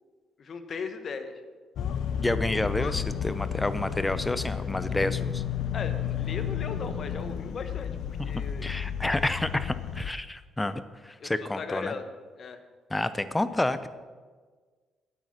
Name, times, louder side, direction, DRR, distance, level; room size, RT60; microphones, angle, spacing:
voice 1, 0.4-1.3 5.7-8.7 11.2-12.0 12.4-12.6, left 5 dB, 50° left, 8 dB, 1.1 m, -37 dB
sound 1, 1.8-10.1, left 8 dB, 70° left, 0.6 m, -32 dB
voice 2, 2.2-5.4 8.6-11.9 12.9-13.9, left 1 dB, 15° left, 13 dB, 0.6 m, -29 dB
9.2 x 8.3 x 6.1 m, 1.5 s
cardioid pair, 90°, 0 cm